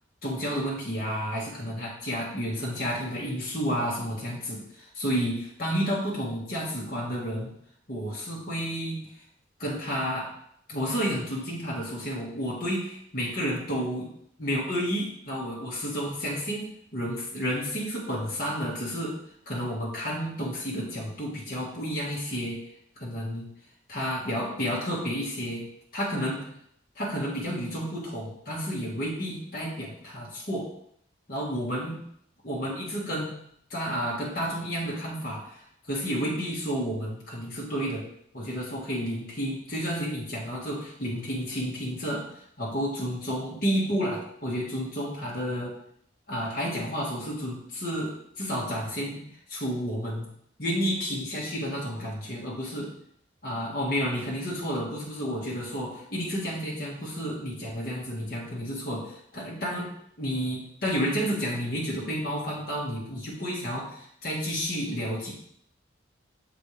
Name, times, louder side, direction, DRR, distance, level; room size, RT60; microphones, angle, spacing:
voice 1, 0.2-7.5 7.9-9.1 9.6-10.3 10.7-14.1 14.4-16.7 16.9-19.2 19.5-22.6 23.0-23.5 23.9-25.7 25.9-26.4 27.0-30.7 31.3-32.0 32.4-33.3 33.7-35.6 35.9-38.1 38.3-42.3 42.6-45.8 46.3-49.2 49.5-50.3 50.6-52.9 53.4-65.3, equal, 50° left, -5 dB, 1.8 m, -31 dB
6.8 x 4.2 x 3.3 m, 0.68 s
head